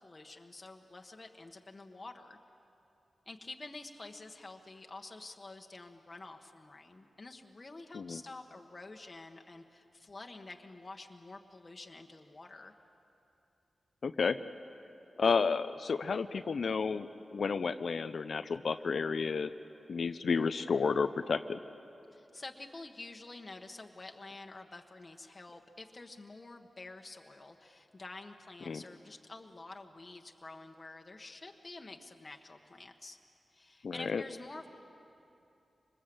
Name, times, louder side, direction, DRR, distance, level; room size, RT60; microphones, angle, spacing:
voice 1, 0.0-2.4 3.3-12.7 22.1-33.2 33.5-34.7, left 2 dB, 40° left, 3 dB, 1.3 m, -49 dB
voice 2, 14.0-14.4 15.2-19.5 19.9-21.6 28.7-28.8 33.8-34.2, left 5 dB, 70° left, 10 dB, 0.6 m, -31 dB
25.0 x 21.0 x 7.8 m, 2.8 s
cardioid pair, 55°, 0 cm